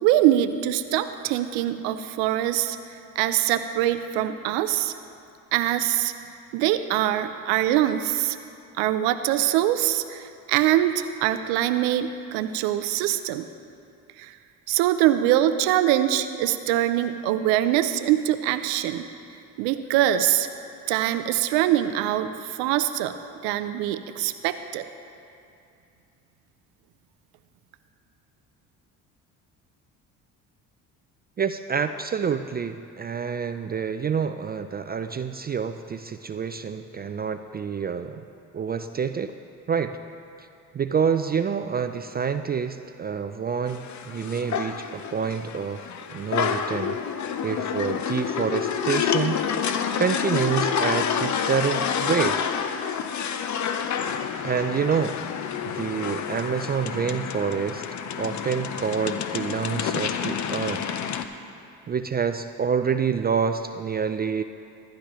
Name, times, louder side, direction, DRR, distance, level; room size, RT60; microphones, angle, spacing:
voice 1, 0.0-2.8 3.2-4.9 5.5-6.1 6.5-8.4 8.8-13.5 14.2-14.3 14.7-19.1 19.6-20.5 20.9-23.1 23.4-24.9, right 12 dB, 85° right, 10 dB, 0.6 m, -23 dB
voice 2, 31.4-38.2 38.5-39.3 39.7-40.0 40.7-47.0 47.4-49.5 50.0-52.4 53.8-53.9 54.4-55.2 55.7-57.8 58.2-60.8 61.9-64.4, right 6 dB, 25° right, 9 dB, 0.4 m, -27 dB
sound 1, 43.7-61.2, left 7 dB, 50° left, 0.7 m, -28 dB
15.0 x 11.5 x 3.1 m, 2.5 s
supercardioid pair, 70°, 38 cm